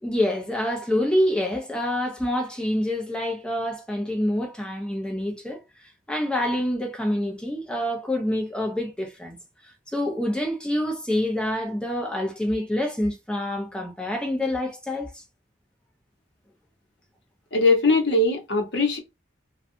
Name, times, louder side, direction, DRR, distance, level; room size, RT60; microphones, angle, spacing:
voice 1, 0.0-5.6 6.1-9.4 9.9-15.2, left 1 dB, 5° left, 0.6 m, -26 dB
voice 2, 17.5-19.0, left 2 dB, 60° left, 0.9 m, -20 dB
2.6 x 2.3 x 2.6 m
head